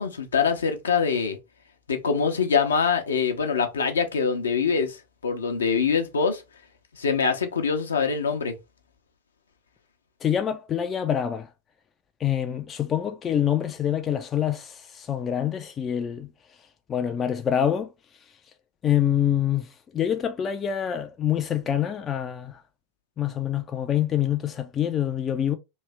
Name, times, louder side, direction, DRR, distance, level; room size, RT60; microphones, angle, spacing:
voice 1, 0.0-1.4 1.9-5.0 5.2-6.4 7.0-8.5, left 5 dB, 70° left, 0.7 m, -24 dB
voice 2, 10.2-11.5 12.2-16.3 16.9-17.9 18.8-22.6 23.2-25.6, left 10 dB, 25° left, 0.4 m, -26 dB
3.1 x 2.7 x 3.3 m
figure-of-eight pair, 90°, 0 cm